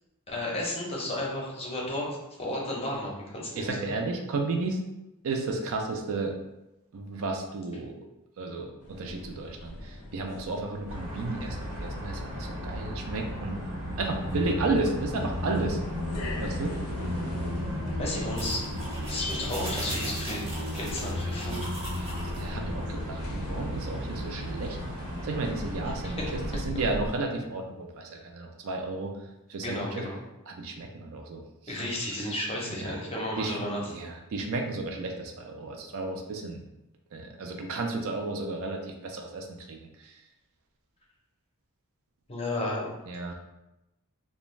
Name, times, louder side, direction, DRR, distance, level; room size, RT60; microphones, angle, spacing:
voice 1, 0.3-2.1 2.4-3.9 18.0-18.7 19.1-20.5 20.7-21.6 26.0-26.1 29.6-30.2 31.7-33.8 42.3-42.9 43.3-43.4, left 1 dB, 25° left, -3 dB, 0.6 m, -33 dB
voice 2, 3.6-4.8 5.2-6.3 6.9-8.0 8.4-13.6 14.0-15.8 16.4-16.8 22.2-24.8 25.2-29.1 29.5-30.1 30.5-31.8 32.2-32.3 32.8-33.0 33.4-33.6 33.9-36.6 37.1-40.1 43.1-43.3, right 3 dB, 65° right, 3 dB, 0.4 m, -33 dB
sound 1, 8.8-27.2, left 1 dB, 85° left, 0.5 m, -42 dB
sound 2, 10.9-26.6, equal, 85° right, 1.0 m, -35 dB
sound 3, 18.4-22.5, right 1 dB, 25° right, 0.6 m, -40 dB
2.4 x 2.2 x 3.0 m, 0.95 s
head